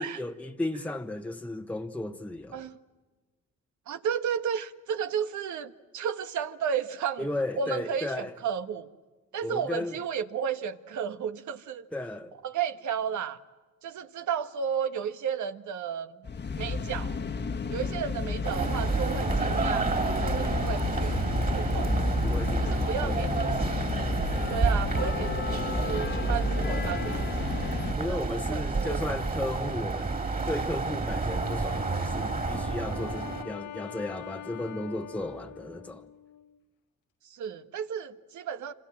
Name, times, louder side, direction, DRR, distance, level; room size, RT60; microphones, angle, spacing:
voice 1, 0.0-2.7 7.2-8.4 9.4-10.0 11.9-12.4 21.7-23.3 28.0-30.2 30.5-36.1, left 1 dB, 5° left, 1.1 m, -35 dB
voice 2, 3.9-7.3 7.6-8.9 9.3-11.8 12.4-13.4 13.8-16.2 16.6-17.2 17.7-19.9 20.2-21.2 21.5-21.9 22.6-24.0 24.5-27.6 28.1-29.0 37.2-38.7, right 8 dB, 75° right, 1.4 m, -33 dB
sound 1, 16.2-27.9, left 4 dB, 35° left, 1.4 m, -32 dB
sound 2, 18.4-33.4, right 3 dB, 30° right, 2.9 m, -30 dB
Wind instrument woodwind instrument, 31.2-36.6, left 10 dB, 85° left, 1.0 m, -43 dB
27.0 x 26.5 x 7.5 m
cardioid pair, 90°, 30 cm